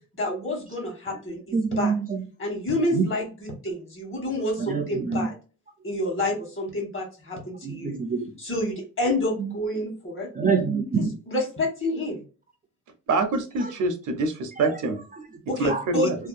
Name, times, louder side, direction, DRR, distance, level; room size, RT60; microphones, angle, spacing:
voice 1, 0.2-1.9 2.4-5.3 5.8-8.0 8.4-10.3 10.9-12.2 15.5-16.1, left 1 dB, 40° left, 0 dB, 1.3 m, -29 dB
voice 2, 1.5-2.2 2.9-3.1 4.6-5.3 7.6-8.3 9.4-9.5 10.4-11.1 15.7-15.8, right 5 dB, 25° right, 4 dB, 0.4 m, -25 dB
voice 3, 13.1-15.0 15.6-16.2, right 3 dB, 65° right, 7 dB, 0.6 m, -25 dB
2.7 x 2.2 x 2.3 m, 0.36 s
cardioid pair, 80°, 32 cm